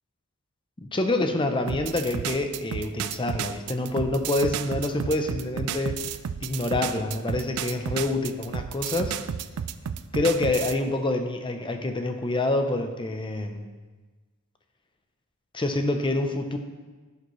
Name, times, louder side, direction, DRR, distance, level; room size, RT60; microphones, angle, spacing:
voice 1, 0.8-6.1 6.4-9.2 10.1-13.7 15.5-16.6, left 2 dB, 20° left, 6 dB, 0.7 m, -27 dB
sound 1, 1.7-10.8, right 8 dB, 85° right, 0.4 m, -32 dB
11.0 x 6.7 x 3.2 m, 1.3 s
head